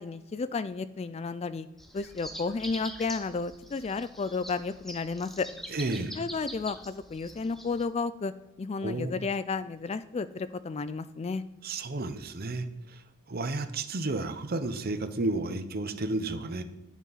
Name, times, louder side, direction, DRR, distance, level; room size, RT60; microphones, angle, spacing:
voice 1, 0.0-1.7 1.9-5.5 6.1-8.3 8.6-11.4, left 4 dB, 30° left, 14 dB, 0.3 m, -32 dB
sound 1, 1.8-7.8, equal, ahead, 0.9 m, -44 dB
voice 2, 5.7-6.1 8.8-9.2 11.6-12.6 13.3-16.6, right 2 dB, 45° right, 10 dB, 0.8 m, -32 dB
11.0 x 8.3 x 4.1 m, 0.99 s
head